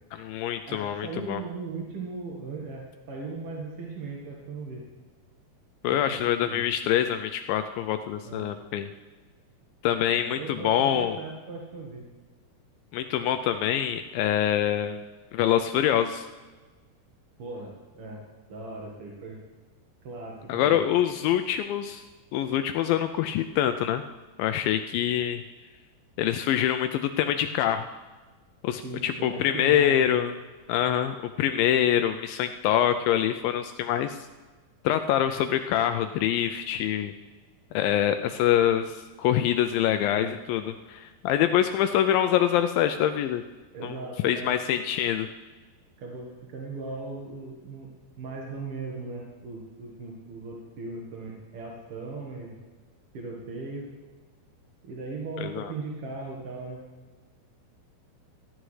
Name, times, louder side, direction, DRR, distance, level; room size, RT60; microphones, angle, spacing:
voice 1, 0.1-1.4 5.8-8.9 9.8-11.2 12.9-15.0 15.3-16.3 20.5-22.0 22.3-24.0 24.4-25.4 26.2-27.9 28.6-30.3 30.7-34.2 34.8-37.1 37.7-43.4 43.8-44.0 44.2-45.3 55.4-55.7, left 10 dB, 85° left, 8 dB, 2.1 m, -25 dB
voice 2, 0.6-4.8 5.9-6.6 8.2-8.5 10.1-12.1 17.4-19.4 20.0-20.7 28.8-30.2 40.1-40.3 43.7-44.6 46.0-52.6 53.1-53.9 54.8-56.8, right 3 dB, 50° right, -2 dB, 1.8 m, -38 dB
17.5 x 14.0 x 3.3 m, 1.3 s
omnidirectional pair, 4.5 m